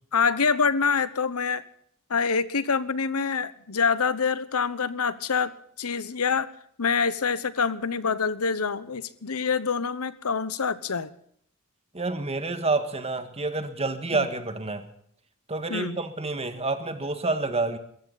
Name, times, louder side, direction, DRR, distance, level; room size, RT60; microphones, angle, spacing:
voice 1, 0.1-1.6 2.1-5.5 5.8-6.5 6.8-11.1 14.1-14.3 15.7-16.0, left 5 dB, 85° left, 16 dB, 1.0 m, -26 dB
voice 2, 11.9-14.9 15.5-17.8, right 3 dB, 30° right, 8 dB, 1.7 m, -28 dB
22.0 x 15.0 x 4.1 m, 0.64 s
head